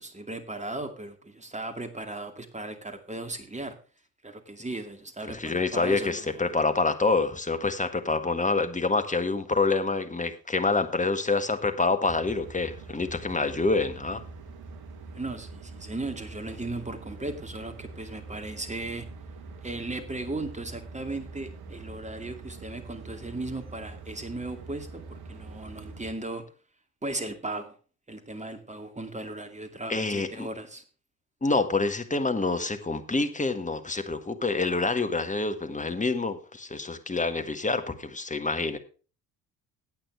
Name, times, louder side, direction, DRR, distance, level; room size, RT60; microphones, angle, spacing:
voice 1, 0.0-3.7 4.2-6.5 15.1-19.1 19.6-26.4 27.0-27.8 28.1-30.8, right 2 dB, 15° right, 8 dB, 2.3 m, -37 dB
voice 2, 5.3-14.2 29.9-30.5 31.4-38.8, left 3 dB, 15° left, 8 dB, 1.7 m, -27 dB
sound 1, 12.1-26.1, right 3 dB, 50° right, 1.8 m, -44 dB
15.0 x 8.8 x 3.4 m, 0.36 s
hypercardioid pair, 55°, 47 cm